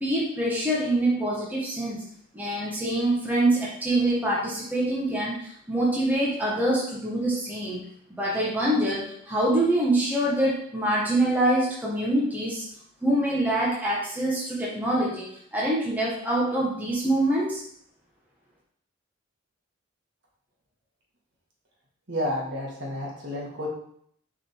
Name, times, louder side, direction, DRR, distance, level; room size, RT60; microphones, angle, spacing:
voice 1, 0.0-2.0 2.3-12.6 13.0-17.6, right 1 dB, 10° right, -6 dB, 1.3 m, -25 dB
voice 2, 22.1-23.7, left 1 dB, 55° right, -3 dB, 2.0 m, -30 dB
6.7 x 4.1 x 4.5 m, 0.65 s
head